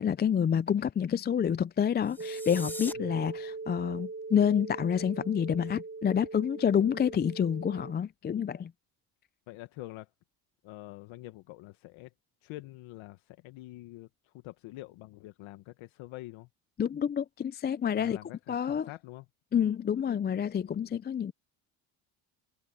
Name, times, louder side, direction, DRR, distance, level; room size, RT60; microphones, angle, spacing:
voice 1, 0.0-8.7 16.8-18.2 18.5-18.9 19.5-21.3, left 8 dB, 25° left, 0.4 m, -28 dB
sound 1, 2.0-2.9, left 1 dB, 5° left, 1.1 m, -42 dB
sound 2, 2.2-7.9, right 3 dB, 25° right, 2.4 m, -40 dB
voice 2, 9.5-10.1 10.6-12.1 12.4-16.5 17.9-19.2 19.5-19.6, left 18 dB, 75° left, 1.4 m, -46 dB
supercardioid pair, 80°, 47 cm